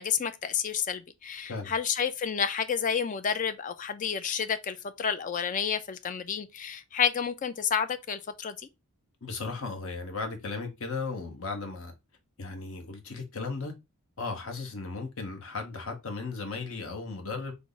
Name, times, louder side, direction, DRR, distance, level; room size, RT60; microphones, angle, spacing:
voice 1, 0.0-8.6, left 7 dB, 35° left, 0.3 m, -30 dB
voice 2, 9.2-11.9 12.4-13.7 14.2-17.5, left 4 dB, 60° left, 0.9 m, -36 dB
3.4 x 2.1 x 3.7 m
head